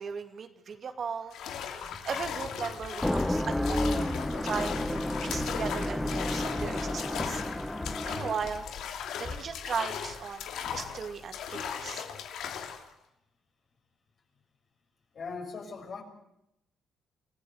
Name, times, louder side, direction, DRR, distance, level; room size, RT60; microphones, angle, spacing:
voice 1, 0.0-4.0 4.4-7.4 8.0-8.6 9.2-10.4 10.7-12.1, right 6 dB, 50° right, 6 dB, 2.5 m, -37 dB
sound 1, 1.3-12.9, left 8 dB, 80° left, 2.7 m, -38 dB
sound 2, 1.8-10.5, left 4 dB, 25° left, 4.9 m, -46 dB
sound 3, 2.9-8.6, left 1 dB, 10° left, 1.1 m, -31 dB
voice 2, 15.1-16.0, left 4 dB, 50° left, 3 dB, 6.2 m, -39 dB
28.0 x 16.0 x 8.1 m, 0.83 s
cardioid pair, 90°, 0 cm